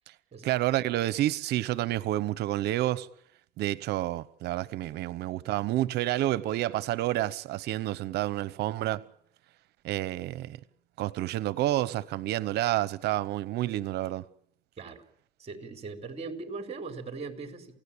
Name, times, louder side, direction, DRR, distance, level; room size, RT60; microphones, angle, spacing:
voice 1, 0.4-3.1 3.6-9.0 9.8-10.6 11.0-14.2, right 15 dB, 80° right, 1.0 m, -29 dB
voice 2, 15.4-17.8, right 4 dB, 40° right, 4.2 m, -39 dB
28.0 x 17.0 x 8.7 m
cardioid pair, 110°, 17 cm